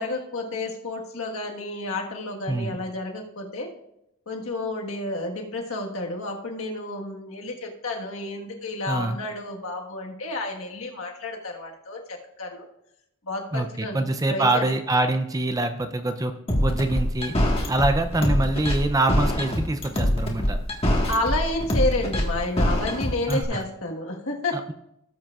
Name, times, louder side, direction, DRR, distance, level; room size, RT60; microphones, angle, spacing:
voice 1, 0.0-3.7 4.3-12.7 13.2-14.7 21.1-24.7, left 2 dB, 70° left, 1 dB, 1.5 m, -30 dB
voice 2, 8.9-9.2 13.5-16.3 16.6-17.3 17.7-20.6 23.3-23.6 24.5-24.7, right 2 dB, 15° right, 8 dB, 0.5 m, -25 dB
sound 1, 16.5-23.4, equal, 25° left, 1.5 m, -23 dB
17.5 x 7.5 x 2.4 m, 0.81 s
head